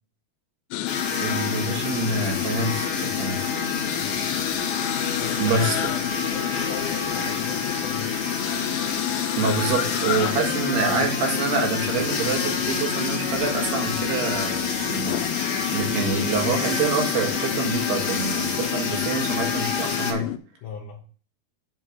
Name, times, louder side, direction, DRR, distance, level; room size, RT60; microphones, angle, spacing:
sound 1, 0.7-20.4, left 13 dB, 85° left, 2.1 m, -29 dB
sound 2, 0.9-20.1, left 4 dB, 50° left, 1.9 m, -29 dB
voice 1, 1.2-3.5 5.4-5.8 9.4-15.5 15.7-20.2, right 4 dB, 80° right, 3.7 m, -26 dB
voice 2, 4.0-4.3 5.2-8.2 20.6-21.0, left 6 dB, 70° left, 2.1 m, -38 dB
7.7 x 3.7 x 6.4 m
omnidirectional pair, 4.7 m